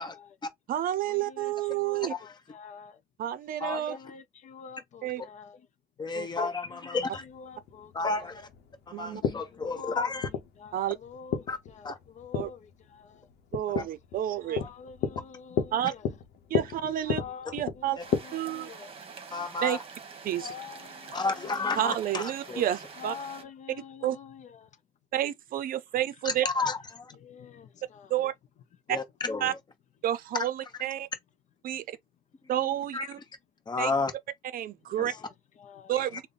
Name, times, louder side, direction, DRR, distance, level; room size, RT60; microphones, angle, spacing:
voice 1, 0.0-0.4 1.0-3.0 3.7-5.7 6.7-8.4 9.5-10.1 10.6-13.3 14.4-16.1 17.0-18.9 20.3-21.7 22.9-24.7 27.1-28.1 29.4-29.5 34.9-36.0, left 7 dB, 45° left, 0.5 m, -47 dB
voice 2, 0.7-2.1 3.2-4.0 5.0-5.2 6.1-6.3 8.9-9.2 10.7-11.0 12.3-12.5 13.5-14.6 15.7-15.9 16.5-17.2 17.5-18.0 18.3-18.7 19.6-19.8 20.2-20.5 21.8-23.1 24.0-24.2 25.1-26.5 28.1-28.3 28.9-29.0 29.4-29.5 30.0-31.1 31.6-31.8 32.5-33.2 33.8-33.9 34.5-35.1 35.9-36.2, right 12 dB, 55° right, 0.5 m, -30 dB
voice 3, 3.6-4.0 6.0-7.2 7.9-8.5 8.9-10.3 11.5-11.6 11.8-12.0 13.8-13.9 19.3-19.8 21.1-22.6 26.2-27.1 28.9-29.6 32.9-33.1 33.7-34.1 35.0-35.2, left 3 dB, 25° left, 0.9 m, -31 dB
sound 1, 7.2-18.2, left 7 dB, 75° left, 0.8 m, -34 dB
sound 2, 18.0-23.4, right 5 dB, 35° right, 1.0 m, -46 dB
3.4 x 2.2 x 3.8 m
cardioid pair, 110°, 17 cm